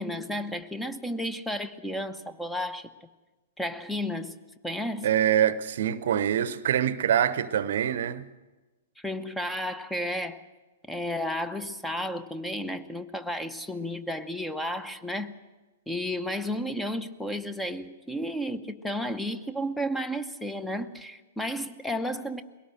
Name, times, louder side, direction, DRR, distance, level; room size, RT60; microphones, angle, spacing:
voice 1, 0.0-2.9 3.6-4.4 4.6-5.1 9.0-10.4 10.9-15.4 15.9-22.4, equal, 5° left, 0.9 m, -32 dB
voice 2, 5.0-8.2, right 10 dB, 55° right, 0.8 m, -25 dB
21.5 x 17.5 x 7.8 m
figure-of-eight pair, 105°, 0 cm